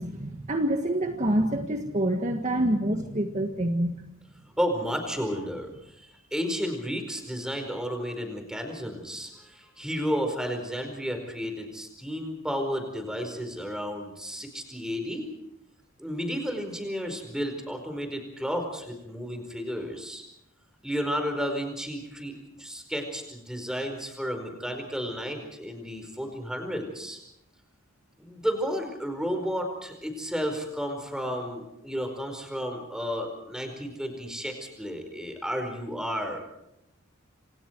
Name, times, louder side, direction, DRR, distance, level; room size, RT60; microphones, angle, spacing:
voice 1, 0.0-3.9, right 1 dB, 35° right, 4 dB, 1.7 m, -26 dB
voice 2, 4.6-15.3 16.0-20.2 20.8-27.2 28.2-36.4, equal, 5° right, 5 dB, 4.7 m, -32 dB
28.0 x 27.0 x 4.7 m, 0.83 s
head